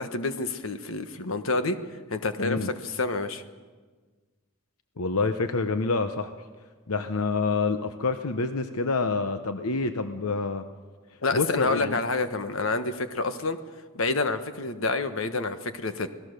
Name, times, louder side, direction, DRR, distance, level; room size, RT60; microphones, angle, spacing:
voice 1, 0.0-1.8 2.1-3.4 11.2-13.6 13.9-16.1, left 3 dB, 70° left, 9 dB, 1.3 m, -28 dB
voice 2, 5.0-6.3 6.9-10.7 11.3-12.0, left 3 dB, 90° left, 9 dB, 0.9 m, -27 dB
27.0 x 18.5 x 6.7 m, 1.4 s
head